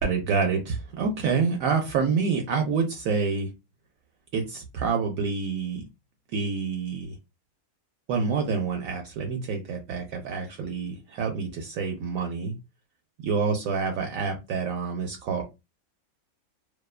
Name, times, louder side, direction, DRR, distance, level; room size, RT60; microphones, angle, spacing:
voice 1, 0.0-3.5 4.3-5.8 6.3-7.2 8.1-12.5 13.2-15.4, right 5 dB, 70° right, 3 dB, 0.9 m, -27 dB
2.5 x 2.2 x 2.3 m, 0.24 s
omnidirectional pair, 1.5 m